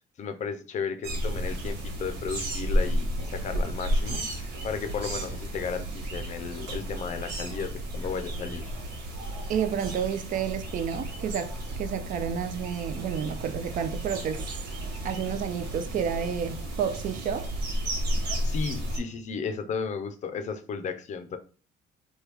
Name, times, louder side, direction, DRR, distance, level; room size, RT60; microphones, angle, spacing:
voice 1, 0.2-8.8 18.2-21.4, left 6 dB, 45° left, 0.5 m, -34 dB
sound 1, 1.0-19.0, equal, 80° right, 1.1 m, -32 dB
voice 2, 9.5-11.5 11.8-14.5 15.0-17.5, right 8 dB, 50° right, 0.4 m, -30 dB
3.1 x 2.3 x 3.3 m
cardioid pair, 110°, 17 cm